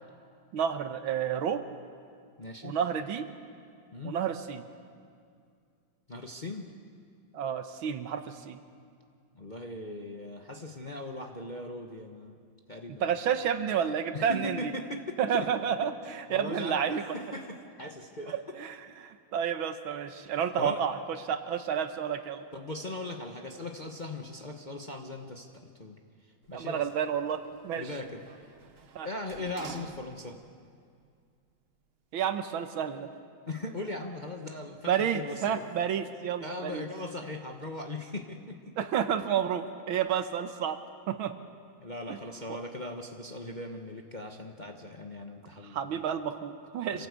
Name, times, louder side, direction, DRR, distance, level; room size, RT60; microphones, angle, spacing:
voice 1, 0.5-1.7 2.6-3.3 4.0-4.7 7.3-8.6 13.0-14.7 15.2-17.0 18.3-21.0 21.3-22.4 26.5-27.9 29.0-29.1 32.1-33.1 34.9-36.8 38.8-40.8 41.1-41.3 42.1-42.2 45.6-47.1, right 8 dB, 75° right, 9 dB, 1.8 m, -30 dB
voice 2, 2.4-2.7 3.9-4.2 6.1-6.7 9.3-12.4 12.7-13.1 14.1-15.5 16.3-18.4 20.6-20.8 22.5-26.0 26.5-26.9 27.8-28.2 29.0-30.4 33.5-35.6 36.4-38.7 41.8-45.9 46.9-47.1, left 2 dB, 30° left, 3 dB, 0.9 m, -39 dB
Sliding door, 26.4-30.6 31.0-31.1, right 6 dB, 50° right, 0.7 m, -50 dB
26.5 x 17.5 x 8.3 m, 2.2 s
omnidirectional pair, 2.3 m